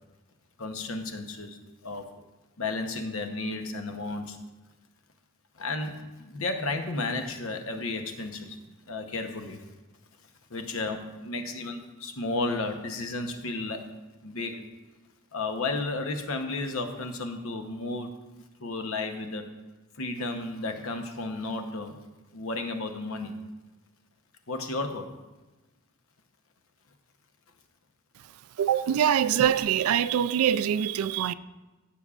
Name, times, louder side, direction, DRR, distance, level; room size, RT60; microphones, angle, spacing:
voice 1, 0.6-1.6 1.8-2.1 2.6-4.4 5.6-8.6 8.9-9.6 10.5-13.9 14.2-14.6 15.3-18.2 18.6-19.5 20.0-22.0 22.3-23.4 24.5-25.1, left 2 dB, 70° left, 0.9 m, -33 dB
voice 2, 28.6-31.3, right 9 dB, 80° right, 0.3 m, -24 dB
14.5 x 7.0 x 2.4 m
head